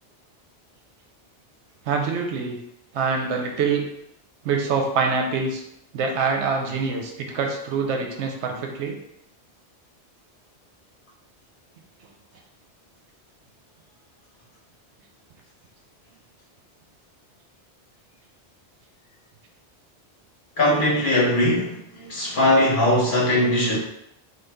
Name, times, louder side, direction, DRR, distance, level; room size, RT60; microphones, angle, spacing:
voice 1, 1.8-2.6 2.9-3.8 4.4-5.6 5.9-9.0, right 5 dB, 85° right, 2 dB, 0.9 m, -25 dB
voice 2, 20.6-23.8, left 1 dB, 50° left, -4 dB, 1.0 m, -20 dB
3.1 x 2.3 x 3.4 m, 0.80 s
omnidirectional pair, 1.1 m